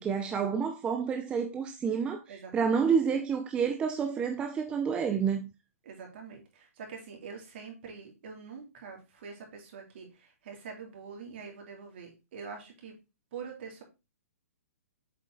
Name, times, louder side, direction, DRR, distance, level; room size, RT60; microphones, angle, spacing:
voice 1, 0.0-5.5, right 6 dB, 15° right, 0.5 m, -29 dB
voice 2, 2.3-2.8 5.8-12.9 13.3-13.8, right 5 dB, 50° right, 2.9 m, -45 dB
7.7 x 4.1 x 3.8 m
hypercardioid pair, 145°, 8 cm